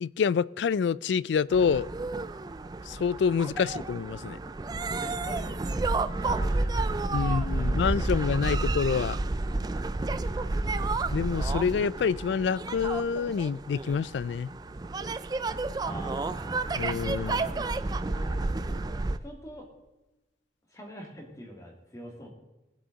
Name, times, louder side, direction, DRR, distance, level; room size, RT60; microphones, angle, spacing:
voice 1, 0.0-1.9 2.9-4.4 7.1-9.2 11.1-14.5 16.7-17.4, left 6 dB, 75° left, 0.3 m, -27 dB
sound 1, 1.5-19.2, right 2 dB, 20° right, 0.4 m, -31 dB
voice 2, 5.0-8.6 15.8-16.7 17.2-19.7 20.7-22.3, equal, 20° left, 2.3 m, -44 dB
19.5 x 7.7 x 3.9 m
head